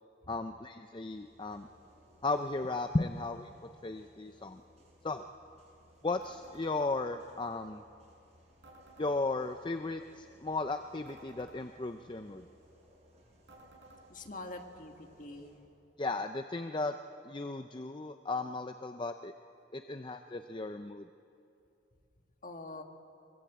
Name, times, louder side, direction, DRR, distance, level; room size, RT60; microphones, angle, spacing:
voice 1, 0.3-1.7 2.2-3.5 3.8-4.6 5.0-5.3 6.0-7.8 9.0-12.5 16.0-16.9 17.2-19.3 19.7-21.1, left 3 dB, 25° left, 8 dB, 0.5 m, -35 dB
sound 1, 1.1-15.6, equal, 35° right, 6.6 m, -63 dB
sound 2, 6.2-6.7 8.6-9.2 11.0-11.6 13.5-14.0, right 2 dB, 75° right, 5.4 m, -55 dB
voice 2, 14.1-14.9 15.2-15.5 22.4-22.8, left 2 dB, 45° left, 4 dB, 1.8 m, -44 dB
23.0 x 23.0 x 8.1 m, 2.6 s
head